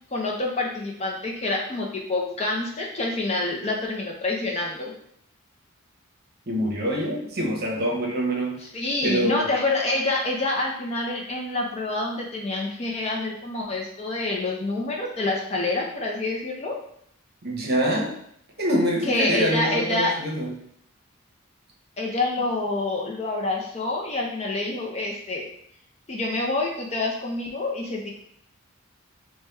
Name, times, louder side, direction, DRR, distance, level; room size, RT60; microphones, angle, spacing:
voice 1, 0.1-4.9 8.7-16.7 19.1-20.1 22.0-25.4 26.1-28.1, left 2 dB, 30° left, -1 dB, 0.5 m, -27 dB
voice 2, 6.5-8.6 9.0-9.5 17.4-18.2 18.6-20.6, equal, 45° right, -2 dB, 0.8 m, -25 dB
4.5 x 2.2 x 3.3 m, 0.69 s
head